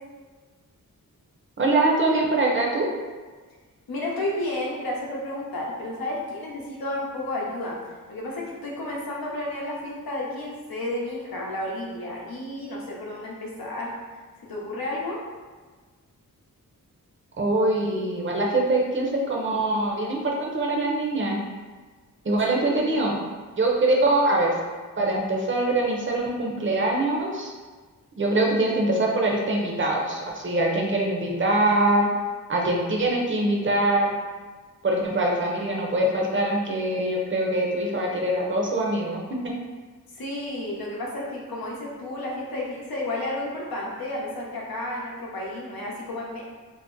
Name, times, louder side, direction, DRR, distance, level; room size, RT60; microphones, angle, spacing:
voice 1, 1.6-2.9 17.4-21.4 22.2-23.1 23.6-24.5 25.0-27.5 28.2-32.1 32.5-34.1 34.8-39.2, right 2 dB, 35° right, -1 dB, 0.5 m, -23 dB
voice 2, 3.9-7.8 8.1-13.9 14.4-15.2 22.5-22.9 40.2-46.4, left 1 dB, 85° left, -3 dB, 0.7 m, -32 dB
2.5 x 2.0 x 3.7 m, 1.4 s
wide cardioid pair, 105°, 35 cm